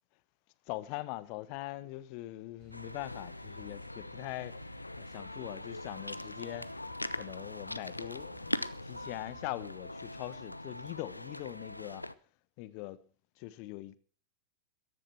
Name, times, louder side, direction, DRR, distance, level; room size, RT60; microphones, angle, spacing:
voice 1, 0.7-4.7 5.0-6.7 7.1-8.6 8.8-12.0 12.6-13.0 13.4-14.0, left 18 dB, 45° left, 1.0 m, -42 dB
sound 1, 2.6-9.8, right 6 dB, 45° right, 3.1 m, -60 dB
sound 2, 2.7-12.1, left 1 dB, 85° left, 0.6 m, -41 dB
14.5 x 10.5 x 6.0 m
figure-of-eight pair, 90°, 0 cm